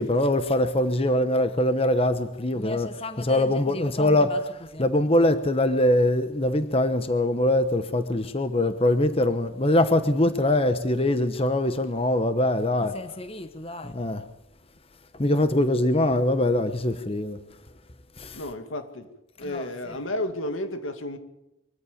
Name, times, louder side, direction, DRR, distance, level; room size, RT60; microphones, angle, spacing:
voice 1, 0.0-14.2 15.2-17.4 18.2-18.4 19.4-19.7, left 1 dB, 30° left, 1.0 m, -23 dB
voice 2, 18.3-19.1 19.4-21.2, left 1 dB, 85° left, 2.3 m, -32 dB
24.0 x 14.5 x 8.6 m
head